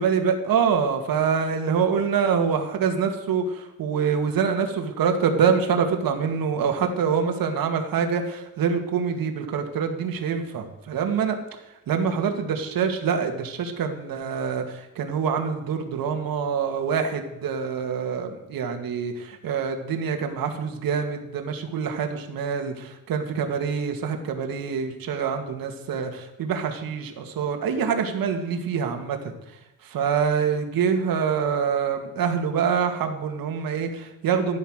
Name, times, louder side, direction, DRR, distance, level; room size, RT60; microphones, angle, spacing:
voice 1, 0.0-29.6 29.9-34.6, right 6 dB, 80° right, 5 dB, 2.3 m, -25 dB
15.0 x 11.0 x 6.6 m, 0.95 s
wide cardioid pair, 160°, 34 cm